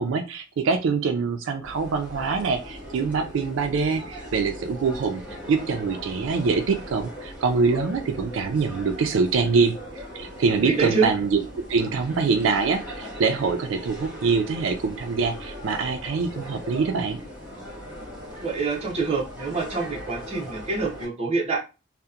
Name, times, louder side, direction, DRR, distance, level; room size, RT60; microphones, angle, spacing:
voice 1, 0.0-5.2 5.5-9.8 10.1-11.4 11.7-17.2, right 4 dB, 75° right, 6 dB, 0.3 m, -24 dB
sound 1, 1.6-21.1, equal, 10° right, 1.3 m, -39 dB
voice 2, 10.6-11.1 18.4-21.6, right 4 dB, 30° right, -1 dB, 0.6 m, -25 dB
2.7 x 2.0 x 2.3 m, 0.29 s
head